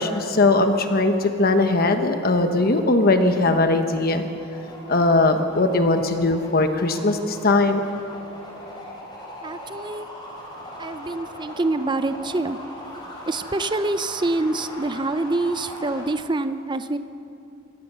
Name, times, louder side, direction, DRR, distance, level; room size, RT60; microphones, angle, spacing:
voice 1, 0.0-4.2 4.9-7.8, left 2 dB, 45° left, 6 dB, 1.0 m, -20 dB
sound 1, 1.4-16.1, equal, 20° left, 4.6 m, -40 dB
voice 2, 9.4-10.1 10.8-12.6 13.3-17.0, right 2 dB, 20° right, 11 dB, 0.5 m, -26 dB
22.5 x 17.0 x 6.8 m, 2.7 s
head